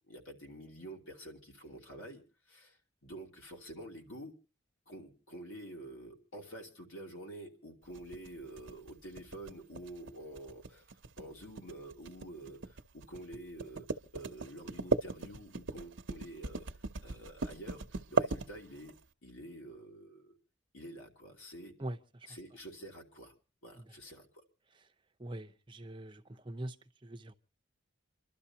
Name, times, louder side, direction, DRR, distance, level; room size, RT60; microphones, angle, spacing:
voice 1, 0.1-4.3 4.9-13.9 14.1-16.7 17.0-18.9 19.2-20.4 20.7-21.7 22.3-23.3 23.6-24.4, right 1 dB, 80° left, 2.8 m, -48 dB
sound 1, 8.0-19.0, right 3 dB, 65° right, 0.8 m, -37 dB
voice 2, 25.2-26.8 27.0-27.3, right 1 dB, 25° right, 0.8 m, -42 dB
28.5 x 12.0 x 2.9 m
head